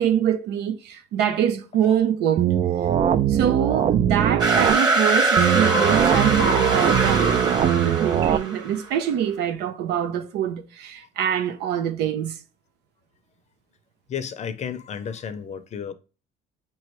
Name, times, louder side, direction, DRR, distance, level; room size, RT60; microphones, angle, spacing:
voice 1, 0.0-2.5 3.3-12.4, right 9 dB, 80° right, 0.7 m, -25 dB
sound 1, 2.4-4.8 5.4-8.4, right 9 dB, 40° right, 0.4 m, -21 dB
sound 2, 4.4-8.8, right 3 dB, 25° right, 1.1 m, -22 dB
voice 2, 14.1-15.9, left 7 dB, 45° left, 0.6 m, -32 dB
5.6 x 3.1 x 3.0 m
cardioid pair, 110°, 17 cm